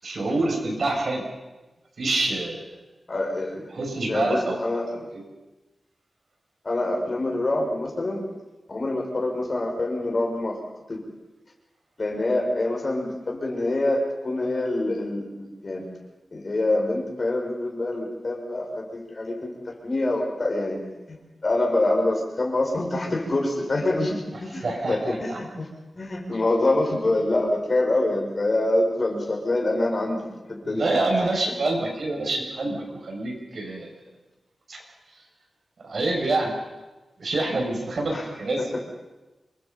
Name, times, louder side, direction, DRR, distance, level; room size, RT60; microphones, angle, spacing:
voice 1, 0.0-1.2 2.0-2.6 3.5-5.2 24.5-25.4 30.6-33.9 34.7-34.8 35.8-36.5 37.2-38.7, right 2 dB, 65° right, 1 dB, 6.6 m, -27 dB
voice 2, 3.1-3.5 4.1-4.9 6.6-8.2 8.7-10.6 10.9-11.0 12.0-15.8 16.3-20.8 21.1-21.2 21.4-25.7 25.9-30.8 38.1-38.3, left 2 dB, 40° left, 0 dB, 6.2 m, -25 dB
27.5 x 23.0 x 5.5 m, 1.1 s
wide cardioid pair, 120°, 0 cm